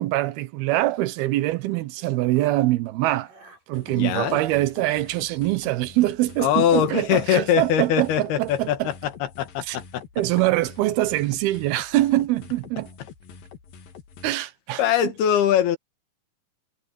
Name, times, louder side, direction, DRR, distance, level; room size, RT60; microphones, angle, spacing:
voice 1, 0.0-3.3 3.7-8.9 9.7-9.8 10.2-12.9 14.2-14.8, right 16 dB, 85° right, 2.9 m, -23 dB
sound 1, 1.2-2.7 3.1-4.4 5.0-5.8, right 3 dB, 60° right, 9.2 m, -55 dB
sound 2, 3.7-14.3, left 6 dB, 70° left, 3.9 m, -46 dB
voice 2, 3.9-4.4 6.4-10.0 14.8-15.8, left 10 dB, 85° left, 3.7 m, -22 dB
omnidirectional pair, 4.4 m